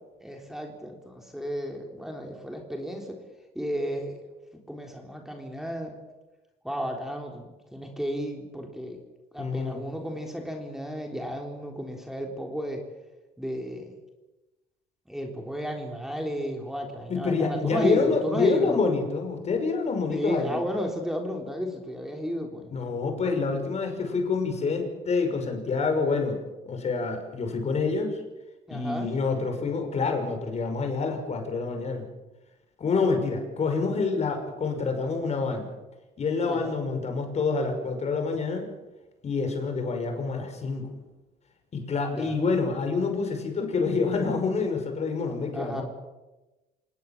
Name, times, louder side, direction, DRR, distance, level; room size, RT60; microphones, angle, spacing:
voice 1, 0.2-3.2 3.6-4.2 4.7-6.0 6.6-9.0 9.3-12.8 13.4-13.9 15.1-18.8 20.1-22.7 28.7-29.1 36.5-36.7 42.1-42.4 45.5-45.8, equal, ahead, 2 dB, 3.7 m, -33 dB
voice 2, 9.4-9.8 17.1-20.6 22.7-26.4 26.7-28.2 28.7-32.0 32.8-35.7 36.2-38.7 39.2-40.9 41.7-45.8, left 4 dB, 40° left, 5 dB, 5.8 m, -27 dB
27.0 x 19.5 x 7.4 m, 1.1 s
cardioid pair, 110°, 17 cm